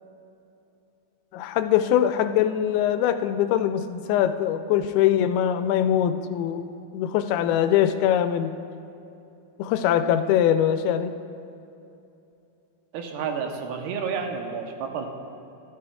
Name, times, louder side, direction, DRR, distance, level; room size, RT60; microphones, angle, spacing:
voice 1, 1.3-8.5 9.6-11.1, left 10 dB, 90° left, 10 dB, 2.5 m, -22 dB
voice 2, 12.9-15.1, right 6 dB, 85° right, 3 dB, 2.9 m, -30 dB
13.5 x 13.0 x 2.3 m, 2.8 s
omnidirectional pair, 4.4 m